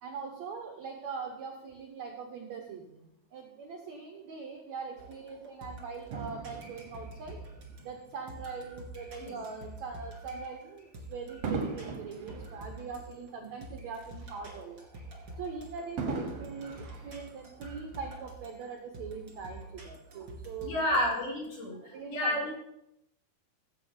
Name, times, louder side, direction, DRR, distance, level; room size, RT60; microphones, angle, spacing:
voice 1, 0.0-7.4 7.8-14.8 15.4-21.1 21.8-22.5, right 5 dB, 85° right, 2 dB, 1.5 m, -42 dB
sound 1, 5.0-21.5, right 1 dB, 35° right, 1.8 m, -47 dB
Fireworks, 6.1-8.7 9.3-9.6 11.4-13.9 14.3-14.4 16.0-17.9 18.6-18.7, right 4 dB, 65° right, 1.7 m, -40 dB
voice 2, 20.6-22.5, left 1 dB, 80° left, -4 dB, 6.0 m, -30 dB
16.5 x 7.8 x 3.9 m, 0.80 s
omnidirectional pair, 4.9 m